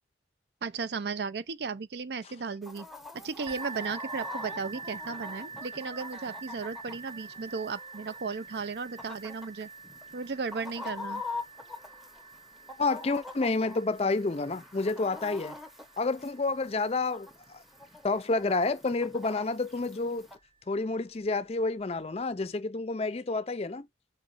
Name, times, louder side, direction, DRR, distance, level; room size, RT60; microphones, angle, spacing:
voice 1, 0.6-2.9 3.1-9.7 10.1-11.2, right 5 dB, 65° right, 0.5 m, -35 dB
Chicken rooster, 2.6-20.4, left 3 dB, ahead, 0.9 m, -45 dB
sound 1, 3.5-19.0 19.8-19.9 20.4-20.5, right 5 dB, 30° right, 0.8 m, -46 dB
voice 2, 12.8-15.6 16.0-17.6 18.0-20.3 20.7-23.9, left 3 dB, 35° left, 0.5 m, -29 dB
5.7 x 4.0 x 5.5 m
head